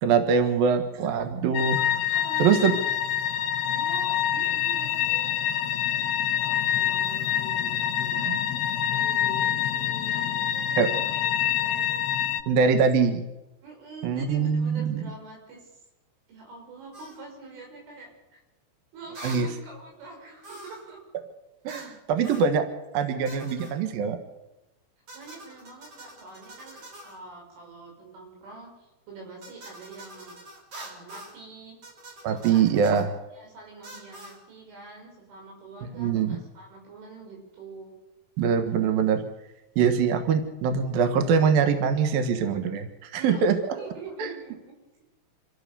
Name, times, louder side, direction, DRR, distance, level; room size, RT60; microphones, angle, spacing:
voice 1, 0.0-1.8 2.4-2.7 8.3-8.4 10.8-10.9 12.5-13.2 14.0-15.0 19.2-19.5 21.6-22.6 22.9-24.2 32.2-33.1 36.0-36.4 38.4-39.2 39.8-43.6 44.2-44.3, right 6 dB, 60° right, 7 dB, 2.8 m, -23 dB
sound 1, 1.5-12.4, left 10 dB, 75° left, 2.6 m, -26 dB
voice 2, 2.0-2.8 3.6-5.3 6.4-8.3 8.9-12.3 13.6-15.7 16.3-18.4 18.9-21.0 22.2-22.4 25.1-30.4 30.8-31.8 32.3-32.6 33.3-37.9 43.2-43.5 43.7-44.7, right 3 dB, 80° right, 1 dB, 8.5 m, -45 dB
sound 2, 16.9-17.2 19.2-19.5 20.4-20.9 21.7-22.0 22.2-22.5 23.3-23.8 25.1-27.2 29.4-31.4 31.8-33.1 33.8-34.4, right 1 dB, 40° right, 4.8 m, -45 dB
26.5 x 15.0 x 6.9 m, 1.0 s
omnidirectional pair, 5.5 m